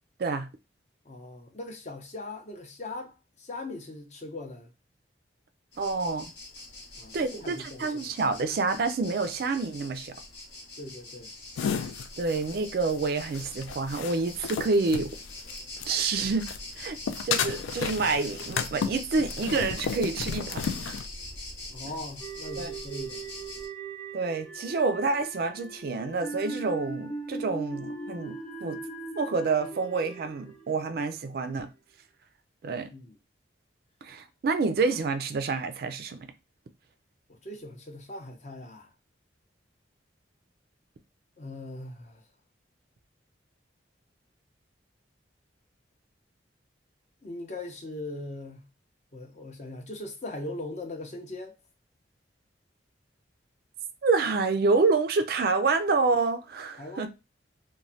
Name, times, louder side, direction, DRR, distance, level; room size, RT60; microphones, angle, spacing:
voice 1, 1.0-4.7 7.0-8.2 10.8-11.3 21.7-23.2 32.9-33.2 37.3-38.9 41.4-42.2 47.2-48.6 49.1-51.5 56.8-57.1, left 2 dB, 35° left, 0.6 m, -40 dB
sound 1, 5.7-23.7, left 2 dB, 60° left, 0.9 m, -43 dB
voice 2, 5.8-6.3 7.1-10.1 12.2-15.2 15.8-16.5 16.8-17.0 17.2-20.9 22.6-22.7 24.1-28.3 28.6-28.8 29.2-31.7 32.6-32.9 34.0-36.3 54.0-57.1, right 4 dB, 50° right, 0.3 m, -28 dB
sound 2, 11.6-16.1 16.4-21.1, left 6 dB, 85° left, 0.3 m, -33 dB
sound 3, 22.2-31.4, right 3 dB, 10° left, 0.9 m, -40 dB
3.1 x 2.1 x 2.6 m
head